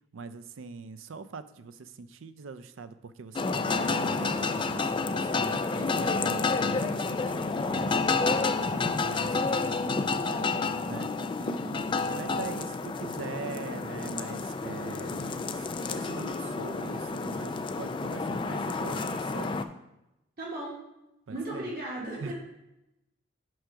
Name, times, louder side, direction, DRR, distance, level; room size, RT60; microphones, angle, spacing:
voice 1, 0.1-7.9 8.6-11.1 12.1-19.6 21.3-21.7 22.2-22.3, right 4 dB, 85° right, 12 dB, 0.5 m, -42 dB
sound 1, 3.4-19.6, left 4 dB, 25° left, 0.3 m, -30 dB
voice 2, 8.7-9.0 11.4-12.4 20.4-20.8 21.3-22.3, right 1 dB, 50° right, -5 dB, 2.1 m, -38 dB
6.2 x 4.9 x 5.7 m, 0.91 s
head